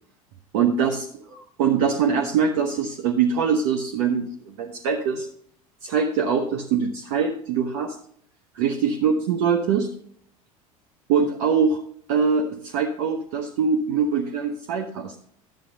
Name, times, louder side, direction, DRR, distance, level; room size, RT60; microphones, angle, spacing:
voice 1, 0.5-5.3 5.8-8.0 8.5-9.9 11.1-11.8 12.1-15.1, right 6 dB, 55° right, 4 dB, 0.9 m, -23 dB
11.5 x 9.0 x 2.7 m, 0.63 s
figure-of-eight pair, 75°, 19 cm